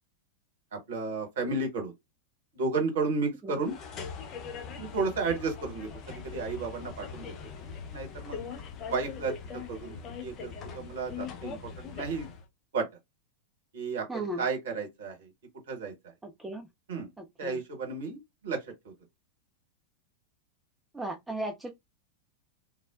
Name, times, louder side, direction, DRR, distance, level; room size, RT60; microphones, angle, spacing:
voice 1, 0.7-1.9 2.5-3.7 4.8-7.3 7.9-8.4 8.9-12.3 12.7-12.9 13.7-15.3 15.7-16.1 16.9-17.1 17.4-18.9, right 4 dB, 60° right, 1.1 m, -33 dB
sound 1, 3.6-12.5, left 6 dB, 30° left, 0.6 m, -41 dB
voice 2, 14.1-14.4 16.2-16.7 17.2-17.6 20.9-21.7, right 1 dB, 10° right, 0.5 m, -36 dB
3.2 x 2.1 x 2.4 m
figure-of-eight pair, 90°, 0 cm